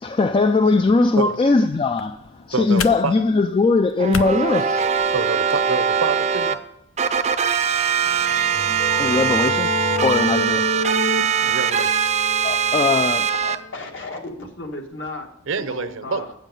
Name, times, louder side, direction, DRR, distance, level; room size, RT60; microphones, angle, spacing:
voice 1, 0.0-2.2 2.5-4.8 9.0-9.7 10.0-10.6 12.4-13.3, left 3 dB, 25° left, 0.3 m, -19 dB
sound 1, 1.7-5.6, left 6 dB, 85° left, 0.6 m, -36 dB
voice 2, 2.5-3.1 5.1-6.6 11.4-11.9 15.5-16.2, right 4 dB, 75° right, 0.7 m, -26 dB
sound 2, 4.0-6.5 7.0-13.5, right 7 dB, 35° right, 0.5 m, -21 dB
sound 3, 8.2-13.7, left 1 dB, 40° left, 1.2 m, -28 dB
voice 3, 13.4-16.3, left 2 dB, 65° left, 1.7 m, -35 dB
8.2 x 7.3 x 5.3 m
head